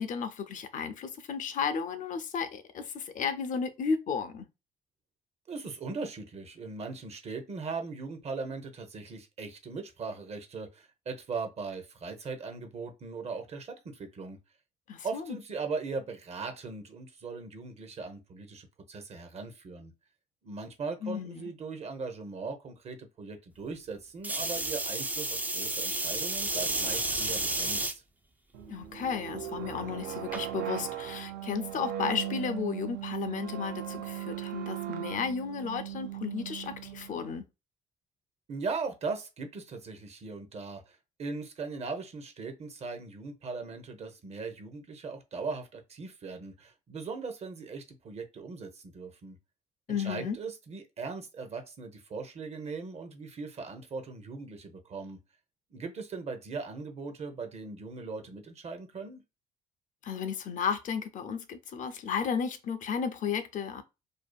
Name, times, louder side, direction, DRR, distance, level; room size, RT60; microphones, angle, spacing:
voice 1, 0.0-4.5 14.9-15.4 21.0-21.5 28.7-37.4 49.9-50.4 60.0-63.8, left 6 dB, 50° left, 0.5 m, -33 dB
voice 2, 5.5-14.4 15.0-19.9 20.4-27.9 38.5-49.4 50.0-55.2 55.7-59.2, right 4 dB, 40° right, 0.7 m, -39 dB
sound 1, 24.2-27.9 28.6-29.0 30.3-30.4, right 2 dB, 10° right, 0.3 m, -31 dB
sound 2, 28.5-37.3, right 12 dB, 75° right, 0.5 m, -38 dB
2.6 x 2.4 x 2.2 m
cardioid pair, 110°, 17 cm